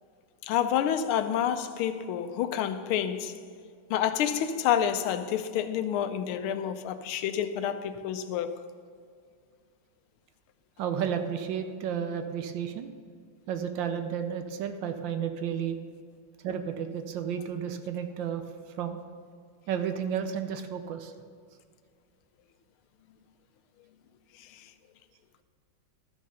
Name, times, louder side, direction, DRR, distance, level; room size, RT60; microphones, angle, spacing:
voice 1, 0.4-3.4 3.9-8.6 24.3-24.7, left 9 dB, 85° left, 1.5 m, -29 dB
voice 2, 10.8-12.9 13.5-15.8 16.4-18.4 18.8-19.0 19.7-21.1, right 8 dB, 75° right, 1.3 m, -32 dB
12.5 x 6.4 x 5.5 m
omnidirectional pair, 2.3 m